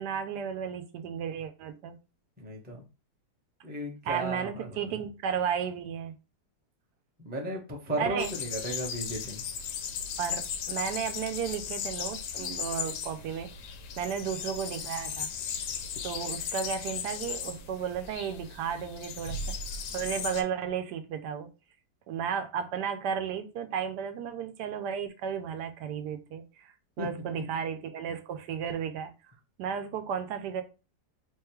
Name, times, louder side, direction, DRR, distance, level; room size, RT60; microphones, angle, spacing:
voice 1, 0.0-2.0 4.0-6.2 8.0-8.3 10.2-13.5 14.0-15.3 16.0-19.4 19.9-21.5 22.1-29.1 29.6-30.6, right 7 dB, 80° right, 1.2 m, -33 dB
voice 2, 2.4-2.8 3.6-4.7 7.2-9.4 27.0-27.1, right 1 dB, 10° right, 0.5 m, -35 dB
sound 1, 8.2-20.4, left 7 dB, 85° left, 1.2 m, -36 dB
3.5 x 2.3 x 4.4 m
omnidirectional pair, 1.8 m